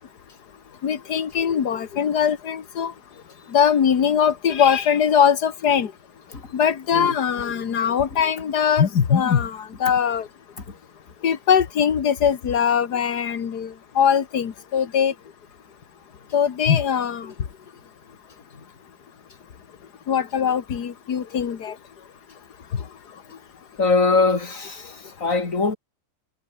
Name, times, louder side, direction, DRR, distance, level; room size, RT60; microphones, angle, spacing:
voice 1, 0.8-2.9 3.5-5.9 6.5-10.3 11.2-15.1 16.3-17.3 20.1-21.8, left 8 dB, 75° left, 2.2 m, -21 dB
voice 2, 23.8-25.8, left 3 dB, 50° left, 3.2 m, -22 dB
omnidirectional pair, 1.8 m